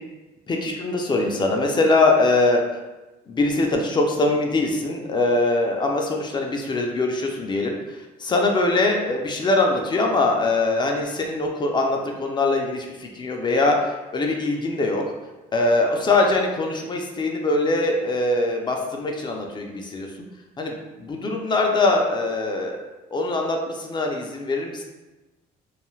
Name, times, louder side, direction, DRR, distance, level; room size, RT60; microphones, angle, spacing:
voice 1, 0.5-2.6 3.3-15.0 15.5-20.1 20.6-22.8 23.1-24.8, left 2 dB, 25° left, 1 dB, 0.4 m, -22 dB
2.5 x 2.3 x 3.0 m, 1.1 s
cardioid pair, 110°, 17 cm